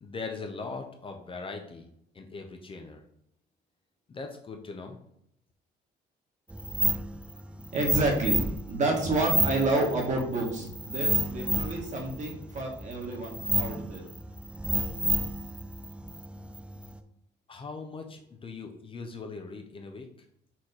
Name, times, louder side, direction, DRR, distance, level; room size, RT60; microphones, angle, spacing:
voice 1, 0.0-1.9 2.1-3.0 4.1-5.0 17.5-20.1, left 4 dB, 30° left, 4 dB, 0.6 m, -40 dB
sound 1, 6.5-17.0, right 1 dB, 5° right, 0.3 m, -31 dB
voice 2, 7.5-8.4 8.7-14.0, right 2 dB, 45° right, 0 dB, 1.5 m, -29 dB
4.5 x 3.0 x 4.0 m, 0.72 s
cardioid pair, 100°, 17 cm